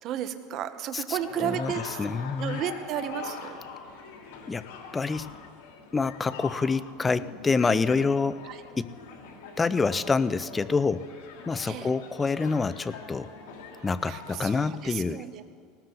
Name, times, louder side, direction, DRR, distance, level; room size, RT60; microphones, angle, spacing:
voice 1, 0.0-2.0 2.4-3.6 8.4-8.6 11.7-12.0 13.7-15.4, right 10 dB, 45° right, 10 dB, 1.0 m, -33 dB
voice 2, 0.9-2.6 4.5-4.6 4.9-5.3 5.9-8.4 8.8-8.9 9.6-11.1 11.5-13.3 13.8-15.2, left 4 dB, 15° left, 14 dB, 0.5 m, -27 dB
sound 1, 1.2-14.8, left 5 dB, 80° left, 2.9 m, -43 dB
19.0 x 19.0 x 4.0 m, 2.1 s
supercardioid pair, 135°, 0 cm